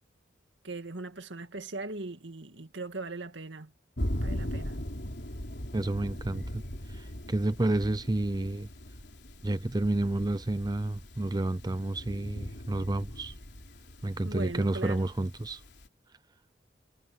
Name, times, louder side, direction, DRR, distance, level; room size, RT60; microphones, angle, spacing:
voice 1, 0.6-3.7 4.2-4.8 14.2-15.1, right 3 dB, 75° right, 2.0 m, -39 dB
Thunder, 4.0-15.9, equal, 65° left, 3.8 m, -39 dB
voice 2, 5.7-8.7 9.4-13.4 14.0-15.6, right 2 dB, 20° right, 0.5 m, -30 dB
head